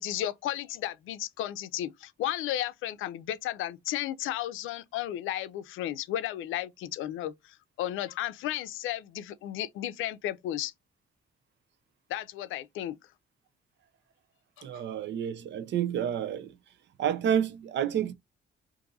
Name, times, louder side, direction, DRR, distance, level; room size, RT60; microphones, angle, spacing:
voice 1, 0.0-10.7 12.1-12.9 14.6-14.8, left 12 dB, 85° left, 0.5 m, -34 dB
voice 2, 14.6-16.5 17.0-18.1, right 9 dB, 65° right, 0.6 m, -29 dB
2.6 x 2.6 x 3.9 m
cardioid pair, 90°, 20 cm